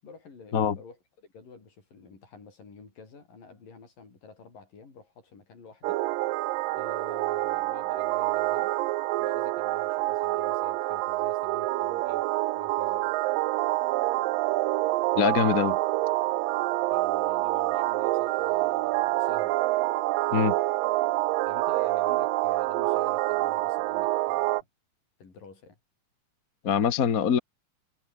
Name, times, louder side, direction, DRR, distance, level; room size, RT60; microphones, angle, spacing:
voice 1, 0.0-6.0 6.7-8.8 9.2-12.3 12.5-13.1 16.7-19.6 21.5-24.7 25.2-25.8, left 4 dB, 75° left, 7.6 m, -49 dB
sound 1, 5.8-24.6, right 18 dB, 85° right, 2.4 m, -27 dB
voice 2, 15.1-15.8 20.3-20.6 26.6-27.4, left 7 dB, 50° left, 1.0 m, -23 dB
omnidirectional pair, 3.9 m